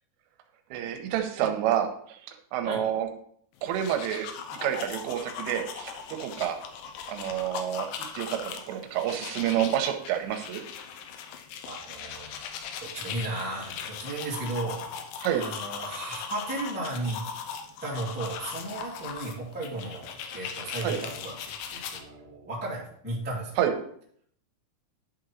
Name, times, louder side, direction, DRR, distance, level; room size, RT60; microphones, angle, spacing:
voice 1, 0.7-3.1 3.6-6.6 7.1-10.6 15.2-15.5 20.8-21.0 23.6-23.7, right 10 dB, 90° right, 5 dB, 3.3 m, -29 dB
sound 1, 3.6-22.0, left 7 dB, 80° left, 2.7 m, -39 dB
voice 2, 11.6-12.3 12.8-14.9 15.3-17.2 17.8-23.6, right 2 dB, 15° right, -6 dB, 0.4 m, -35 dB
11.0 x 3.9 x 4.5 m, 0.63 s
omnidirectional pair, 5.8 m